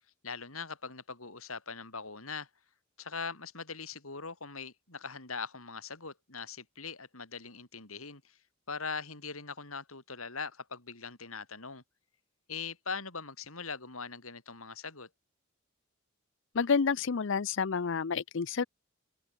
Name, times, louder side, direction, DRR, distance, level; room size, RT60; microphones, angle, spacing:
voice 1, 0.2-2.5 3.0-8.4 8.7-11.8 12.5-15.1, left 5 dB, 80° left, 6.0 m, -41 dB
voice 2, 16.5-18.7, left 5 dB, 60° left, 0.6 m, -29 dB
open air
head